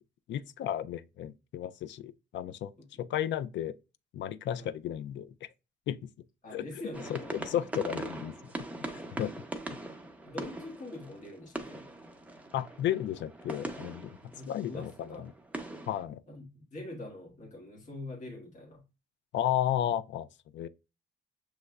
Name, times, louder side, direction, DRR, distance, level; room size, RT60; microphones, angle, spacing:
voice 1, 0.3-2.7 3.0-3.8 4.1-5.5 5.9-6.1 6.5-6.7 7.1-8.4 8.8-9.3 12.5-14.2 14.5-15.3 15.9-16.2 19.3-20.3 20.5-20.7, left 11 dB, 70° left, 0.4 m, -33 dB
voice 2, 6.4-7.4 10.2-11.9 14.4-15.3 16.3-18.8, left 2 dB, 40° left, 1.3 m, -44 dB
sound 1, 6.9-16.0, right 2 dB, 5° right, 0.7 m, -42 dB
6.5 x 3.0 x 2.2 m
cardioid pair, 90°, 20 cm